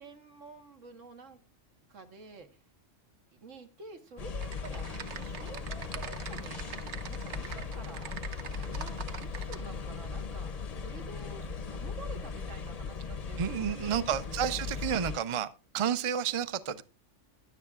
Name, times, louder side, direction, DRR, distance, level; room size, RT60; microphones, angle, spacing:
voice 1, 0.0-1.4 1.9-2.6 3.3-6.7 7.1-10.5 10.8-14.7, right 3 dB, 90° right, 1.8 m, -49 dB
sound 1, 4.2-15.2, left 5 dB, 40° left, 0.6 m, -38 dB
Typing, 4.4-9.6, right 7 dB, 70° right, 1.1 m, -43 dB
voice 2, 13.4-15.5 15.7-16.8, right 8 dB, 40° right, 0.4 m, -30 dB
16.0 x 11.0 x 2.4 m
omnidirectional pair, 1.3 m